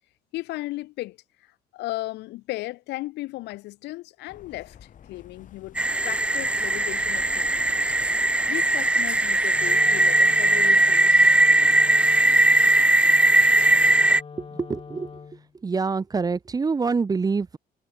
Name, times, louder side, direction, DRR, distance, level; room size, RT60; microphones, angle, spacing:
voice 1, 0.3-5.8 6.0-11.8, left 19 dB, 85° left, 5.2 m, -36 dB
sound 1, 4.3-12.3, left 9 dB, 50° left, 5.3 m, -51 dB
sound 2, 5.8-14.2, right 2 dB, 5° right, 0.4 m, -19 dB
Wind instrument woodwind instrument, 9.5-15.5, left 5 dB, 30° left, 6.1 m, -43 dB
voice 2, 14.4-15.1 15.6-17.6, right 4 dB, 20° right, 0.8 m, -26 dB
cardioid pair, 110°, 17 cm